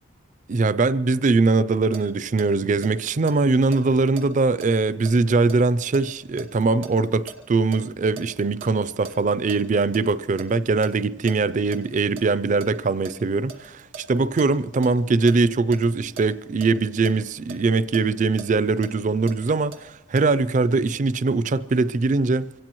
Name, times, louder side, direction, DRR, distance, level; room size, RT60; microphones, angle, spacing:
voice 1, 0.5-22.5, right 3 dB, 40° right, 0.4 m, -22 dB
sound 1, 1.9-7.8 8.2-10.5 10.8-10.9 11.3-11.8 12.2-15.4 15.7-15.9 16.2-16.3 16.6-16.7 17.0-19.8 20.2-20.3, right 5 dB, 80° right, 1.3 m, -41 dB
24.5 x 17.0 x 3.1 m
head